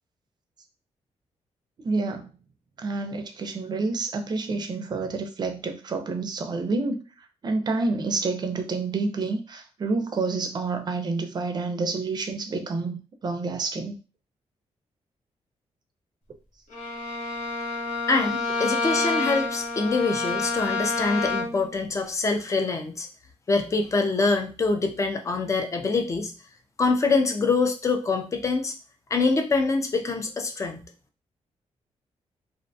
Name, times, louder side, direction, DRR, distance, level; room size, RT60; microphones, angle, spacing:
voice 1, 1.8-2.3 2.8-7.0 7.4-14.0, right 3 dB, 40° right, 6 dB, 0.4 m, -28 dB
Bowed string instrument, 16.7-21.7, left 3 dB, 85° left, 0.9 m, -28 dB
voice 2, 18.1-23.1 23.5-26.3 26.8-28.7 29.1-30.8, left 3 dB, 25° left, 5 dB, 0.4 m, -25 dB
2.5 x 2.2 x 2.6 m, 0.34 s
wide cardioid pair, 130°, 12 cm